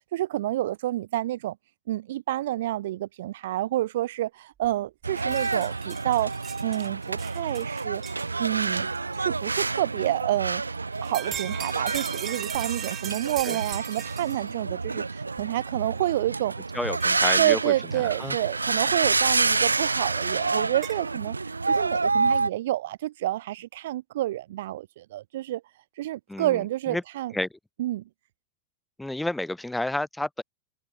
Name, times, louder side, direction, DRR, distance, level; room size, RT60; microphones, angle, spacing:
voice 1, 0.1-1.6 1.9-6.3 6.6-10.6 11.0-16.5 17.4-21.4 21.7-25.6 26.0-27.3 27.8-28.0, right 14 dB, 55° right, 2.0 m, -29 dB
sound 1, 4.6-4.7 5.0-8.7 9.5-9.6 10.9-14.5 15.4-15.5 17.0-17.1 19.3-19.4 20.8-21.0, right 10 dB, 30° right, 1.1 m, -38 dB
sound 2, 5.0-22.5, right 3 dB, 80° right, 1.0 m, -28 dB
voice 2, 16.7-17.7 18.2-18.4 26.3-26.6 26.9-27.0 27.3-27.5 29.0-30.4, left 1 dB, 5° left, 2.3 m, -30 dB
figure-of-eight pair, 90°, 0 cm